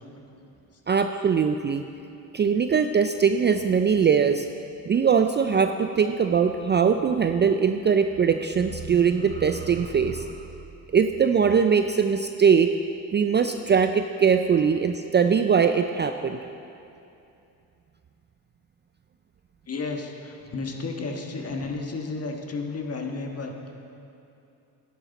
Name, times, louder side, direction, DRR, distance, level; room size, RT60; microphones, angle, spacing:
voice 1, 0.9-1.8 2.3-4.5 4.9-10.4 10.9-12.7 13.1-16.4, right 6 dB, 30° right, 7 dB, 0.4 m, -21 dB
voice 2, 19.7-23.7, left 3 dB, 40° left, 2 dB, 1.4 m, -32 dB
11.0 x 10.0 x 4.1 m, 2.7 s
cardioid pair, 80°, 39 cm